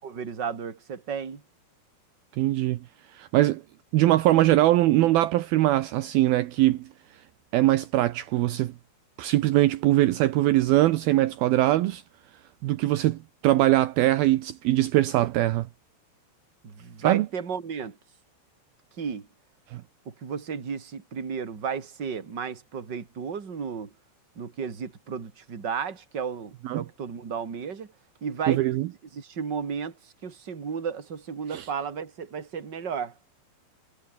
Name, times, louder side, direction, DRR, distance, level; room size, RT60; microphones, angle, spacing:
voice 1, 0.0-1.4 16.6-18.0 19.0-19.3 20.0-23.9 24.4-27.9 28.2-28.6 29.1-33.1, right 6 dB, 30° right, 2.7 m, -33 dB
voice 2, 2.4-2.8 3.1-3.6 3.9-6.9 7.5-8.7 9.2-12.0 12.6-15.7 17.0-17.3 19.7-19.8 26.6-26.8 28.5-28.9 31.5-31.7, right 15 dB, 80° right, 2.1 m, -22 dB
omnidirectional pair, 5.6 m